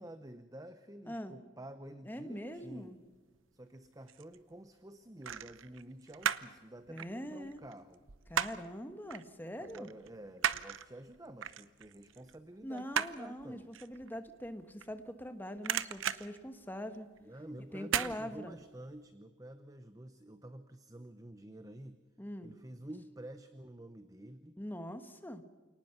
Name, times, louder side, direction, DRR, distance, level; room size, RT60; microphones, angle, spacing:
voice 1, 0.0-3.0 3.5-8.0 9.6-13.7 17.2-22.0 22.4-24.6, right 1 dB, 15° right, 10 dB, 0.8 m, -50 dB
voice 2, 2.0-3.0 6.9-7.6 8.3-9.9 12.6-17.1 17.7-18.6 22.2-22.5 24.6-25.4, equal, 10° left, 8 dB, 1.3 m, -43 dB
sound 1, 3.7-4.4 5.2-6.6 6.9-8.8 9.1-9.3 9.6-15.3 15.6-17.2 17.8-18.2 18.6-18.7, right 8 dB, 80° right, 0.8 m, -36 dB
28.5 x 19.0 x 5.9 m, 1.4 s
head